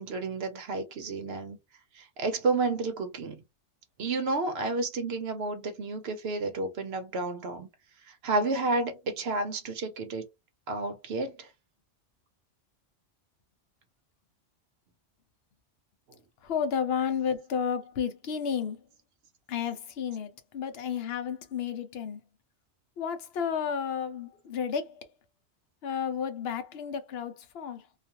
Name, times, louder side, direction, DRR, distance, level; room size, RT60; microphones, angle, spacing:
voice 1, 0.0-1.6 2.0-3.4 4.0-7.7 8.2-10.2 10.7-11.5, right 3 dB, 65° right, 0.8 m, -31 dB
voice 2, 16.4-18.8 19.5-22.2 23.0-24.9 25.8-27.8, left 7 dB, 65° left, 0.8 m, -32 dB
2.4 x 2.3 x 2.8 m
omnidirectional pair, 1.2 m